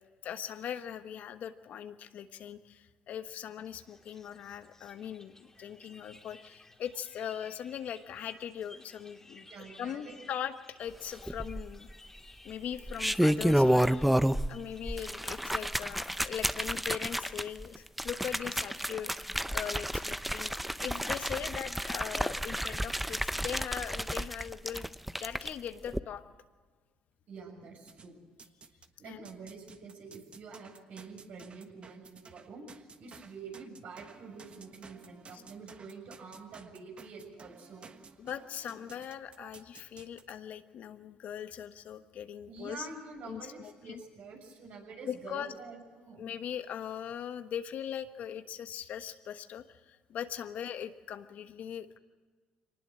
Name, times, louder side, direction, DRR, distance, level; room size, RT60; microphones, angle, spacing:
voice 1, 0.2-9.5 9.8-10.5 10.8-11.9 12.4-14.1 14.5-20.5 20.8-24.9 25.2-26.2 29.0-29.3 38.2-42.9 43.3-44.0 45.1-45.5 46.2-52.0, left 9 dB, 65° left, 9 dB, 1.3 m, -40 dB
sound 1, 3.6-15.2, left 2 dB, 15° left, 2.5 m, -56 dB
voice 2, 9.5-10.2 27.3-28.2 29.0-37.9 39.4-39.5 42.5-46.2, right 4 dB, 65° right, 2 dB, 6.9 m, -47 dB
sound 2, 11.3-11.9 12.7-14.6 14.9-25.5 25.9-26.0, equal, 5° right, 0.7 m, -30 dB
sound 3, 27.9-28.9 29.3-40.3, right 5 dB, 40° right, 1.4 m, -54 dB
24.0 x 19.5 x 7.6 m, 1.4 s
supercardioid pair, 75°, 3 cm